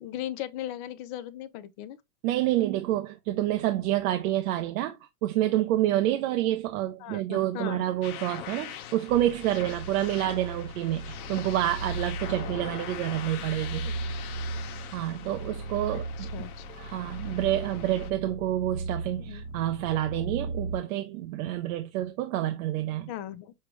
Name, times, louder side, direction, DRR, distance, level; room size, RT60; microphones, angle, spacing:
voice 1, 0.0-2.0 7.0-7.8 13.8-13.9 15.9-16.7 19.2-19.4 23.1-23.5, left 12 dB, 45° left, 0.7 m, -38 dB
voice 2, 2.2-5.0 5.2-13.9 14.9-16.3 16.7-23.1, right 13 dB, 70° right, 0.8 m, -28 dB
sound 1, 8.0-18.1, left 11 dB, 70° left, 0.9 m, -42 dB
sound 2, 9.1-20.8, right 3 dB, 15° right, 0.9 m, -37 dB
6.5 x 2.3 x 3.1 m
supercardioid pair, 125°, 44 cm